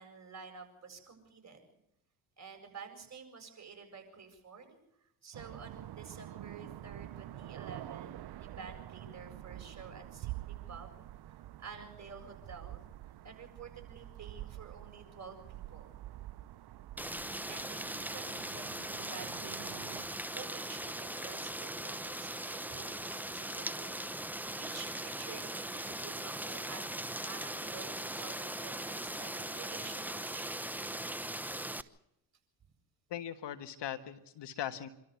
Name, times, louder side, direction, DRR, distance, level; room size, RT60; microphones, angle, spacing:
voice 1, 0.0-1.6 2.4-11.0 11.3-12.8 13.2-16.0 17.5-27.0 27.3-30.6, right 5 dB, 35° right, 4 dB, 7.7 m, -50 dB
sound 1, 5.3-20.1, right 13 dB, 55° right, 1.0 m, -48 dB
sound 2, 10.2-11.7, right 19 dB, 75° right, 0.8 m, -43 dB
Rain, 17.0-31.8, right 1 dB, 5° right, 0.9 m, -40 dB
voice 2, 33.1-34.9, left 10 dB, 60° left, 11 dB, 1.6 m, -40 dB
26.5 x 13.0 x 8.3 m, 0.81 s
supercardioid pair, 65°, 47 cm